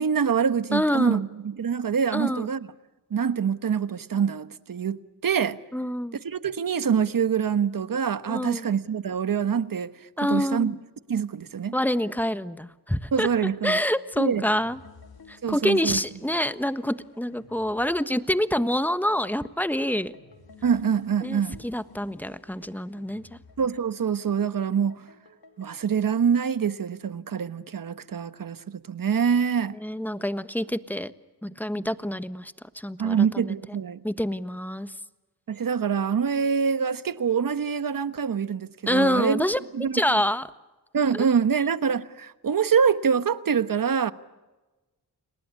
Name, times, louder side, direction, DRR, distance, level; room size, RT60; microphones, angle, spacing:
voice 1, 0.0-2.6 3.1-5.6 6.2-9.9 10.3-10.7 11.1-11.7 13.1-13.8 14.2-14.4 15.4-16.0 20.6-21.6 23.6-25.0 25.6-29.8 33.0-34.0 35.5-39.4 39.7-40.2 40.9-44.1, right 7 dB, 60° right, 1.2 m, -25 dB
voice 2, 0.7-1.2 2.1-2.5 5.7-6.2 8.3-8.7 10.2-10.8 11.7-13.3 13.6-14.8 15.3-20.1 21.2-23.2 29.8-31.1 31.4-33.5 34.0-34.9 38.9-39.6 39.9-40.5 41.1-41.2, left 1 dB, 5° left, 1.3 m, -27 dB
sound 1, 14.5-25.8, left 4 dB, 70° left, 2.9 m, -53 dB
30.0 x 19.5 x 9.6 m
cardioid pair, 55°, 38 cm